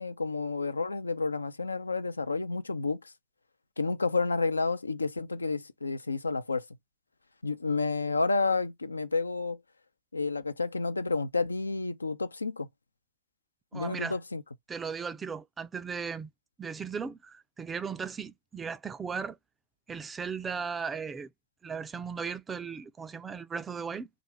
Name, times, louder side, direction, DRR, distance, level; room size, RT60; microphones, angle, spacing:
voice 1, 0.0-3.0 3.8-6.7 7.4-9.6 10.1-12.7 13.7-14.4, left 3 dB, 80° left, 0.3 m, -30 dB
voice 2, 13.7-14.2 14.7-16.3 16.6-19.4 19.9-21.3 21.6-24.1, right 6 dB, 15° right, 0.3 m, -37 dB
2.4 x 2.3 x 3.1 m
figure-of-eight pair, 90°, 0 cm